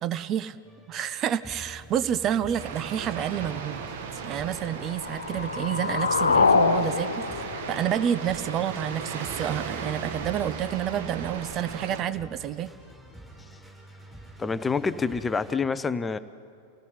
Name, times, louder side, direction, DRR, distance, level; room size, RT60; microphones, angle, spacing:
voice 1, 0.0-0.6 0.9-3.8 4.2-7.2 7.7-12.7, right 10 dB, 30° right, 14 dB, 0.6 m, -29 dB
sound 1, 0.6-15.5, right 1 dB, 10° right, 7.5 m, -47 dB
sound 2, 2.6-12.0, right 6 dB, 55° right, 1.8 m, -37 dB
sound 3, 4.7-8.7, left 4 dB, 75° left, 0.6 m, -25 dB
voice 2, 14.4-16.2, left 5 dB, 15° left, 13 dB, 0.6 m, -27 dB
28.5 x 17.5 x 5.7 m, 2.3 s
figure-of-eight pair, 90°, 0 cm